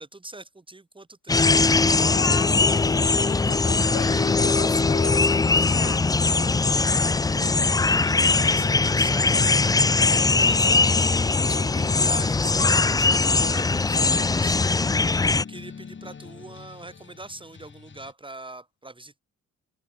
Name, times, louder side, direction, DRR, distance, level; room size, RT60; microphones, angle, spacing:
voice 1, 0.0-1.6 7.0-9.7 10.2-15.0 15.3-19.2, right 2 dB, 15° right, 2.8 m, -42 dB
sound 1, 1.3-15.4, left 3 dB, 15° left, 0.4 m, -21 dB
voice 2, 2.0-6.1, left 14 dB, 70° left, 0.9 m, -36 dB
sound 2, 4.3-18.1, left 6 dB, 40° left, 5.9 m, -42 dB
cardioid pair, 90°, 30 cm